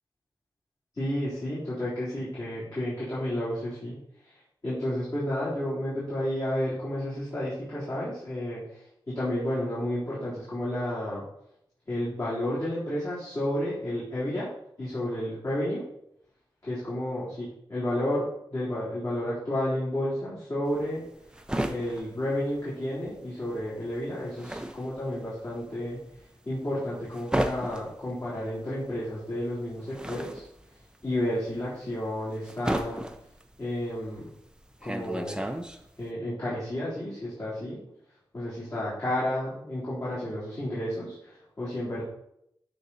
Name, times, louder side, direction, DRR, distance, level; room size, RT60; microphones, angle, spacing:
voice 1, 0.9-4.0 4.2-11.2 11.9-14.5 14.8-15.9 16.6-18.3 18.5-21.0 21.7-26.0 26.5-30.4 31.0-33.0 33.6-34.3 34.8-35.5 36.0-37.8 38.3-42.0, left 1 dB, 40° left, -10 dB, 3.7 m, -31 dB
sound 1, 20.7-23.2 23.5-36.1, right 1 dB, 10° right, 0.7 m, -34 dB
13.0 x 4.3 x 4.1 m, 0.75 s
wide cardioid pair, 95°, 8 cm